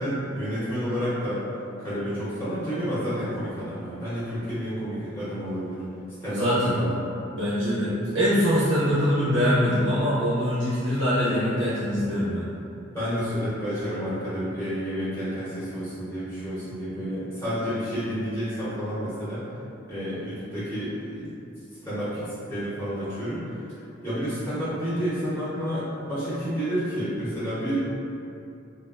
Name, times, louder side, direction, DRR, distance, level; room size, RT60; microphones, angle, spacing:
voice 1, 0.0-1.4 1.8-5.8 6.2-7.0 12.9-19.4 19.9-21.3 21.8-23.4 24.0-27.8, equal, 10° left, -13 dB, 0.7 m, -30 dB
voice 2, 6.3-6.8 7.3-12.4, equal, 70° right, -9 dB, 0.5 m, -23 dB
3.2 x 2.3 x 2.3 m, 2.7 s
head